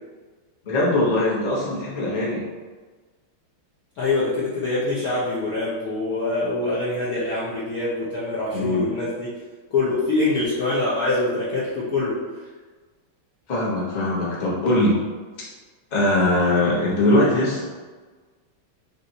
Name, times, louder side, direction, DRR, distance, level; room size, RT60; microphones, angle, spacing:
voice 1, 0.6-2.4 8.5-8.9 13.5-14.9 15.9-17.6, left 1 dB, 35° left, -6 dB, 0.7 m, -21 dB
voice 2, 3.9-9.3 9.7-12.5, left 2 dB, 65° left, -8 dB, 0.9 m, -24 dB
4.3 x 2.6 x 3.9 m, 1.4 s
omnidirectional pair, 2.4 m